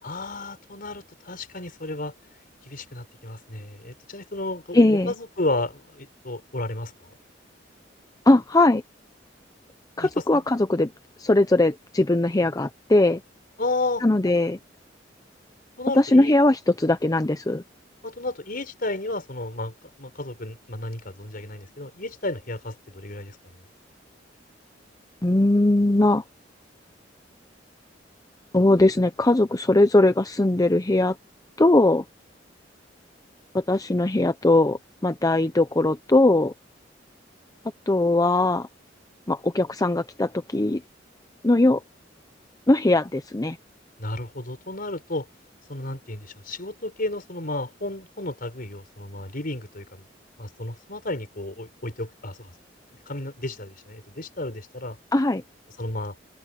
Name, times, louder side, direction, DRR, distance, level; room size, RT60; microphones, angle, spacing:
voice 1, 0.0-2.1 2.7-7.1 10.0-10.4 13.6-14.1 15.8-16.3 18.0-23.6 44.0-45.3 45.7-50.0 50.4-52.5 53.1-55.0 55.8-56.1, left 2 dB, 50° left, 4.8 m, -32 dB
voice 2, 4.7-5.1 8.3-8.8 10.0-10.9 11.2-13.2 14.0-14.6 15.9-17.6 25.2-26.2 28.5-31.2 31.6-32.0 33.5-36.5 37.9-38.7 39.3-40.8 41.4-41.8 42.7-43.6 55.1-55.4, left 2 dB, 20° left, 0.7 m, -20 dB
open air
head